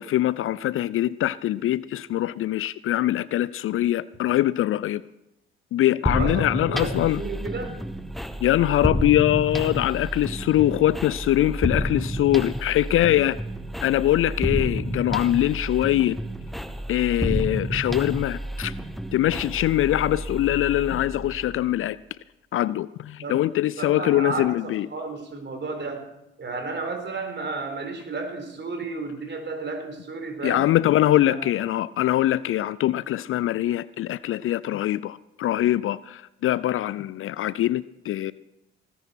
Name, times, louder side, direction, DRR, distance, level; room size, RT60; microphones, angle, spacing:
voice 1, 0.0-5.0 5.7-7.2 8.4-13.4 13.8-16.2 16.9-18.7 19.1-22.0 22.5-24.9 30.4-38.3, left 13 dB, 45° left, 20 dB, 0.5 m, -23 dB
sound 1, 6.1-21.7, equal, ahead, 1.2 m, -30 dB
voice 2, 6.1-7.8 23.2-23.3 23.8-26.1 26.4-30.7 31.2-31.4, right 3 dB, 40° right, 6 dB, 4.2 m, -32 dB
18.5 x 10.0 x 5.9 m, 0.90 s
hypercardioid pair, 50°, 29 cm